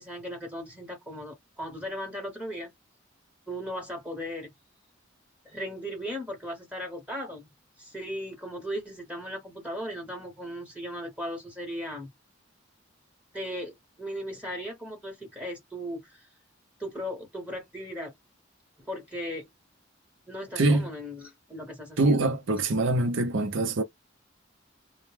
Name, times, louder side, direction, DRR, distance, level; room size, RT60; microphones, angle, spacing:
voice 1, 0.0-2.7 3.5-4.5 5.4-7.5 7.8-12.1 13.3-16.2 16.8-18.1 18.8-19.5 20.3-22.3, equal, 5° right, 1.0 m, -37 dB
voice 2, 20.6-20.9 22.0-23.8, right 2 dB, 70° right, 0.6 m, -24 dB
2.2 x 2.1 x 3.1 m
head